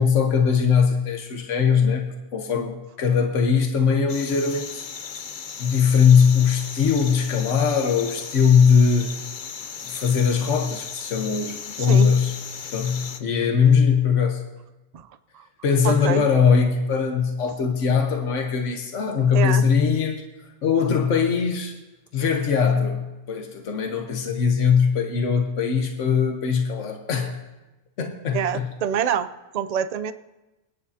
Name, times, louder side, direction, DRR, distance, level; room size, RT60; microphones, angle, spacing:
voice 1, 0.0-4.8 5.6-9.2 9.8-12.3 12.7-14.4 15.6-21.8 22.1-27.4 28.0-28.7, left 6 dB, 75° left, 3 dB, 1.4 m, -21 dB
sound 1, 4.1-13.2, left 6 dB, 45° left, 0.7 m, -36 dB
voice 2, 11.8-12.1 14.9-15.1 15.3-15.4 15.8-16.2 19.3-19.7 28.3-29.3 29.5-30.1, right 8 dB, 65° right, 12 dB, 0.4 m, -25 dB
26.5 x 9.9 x 2.8 m, 1.1 s
omnidirectional pair, 1.3 m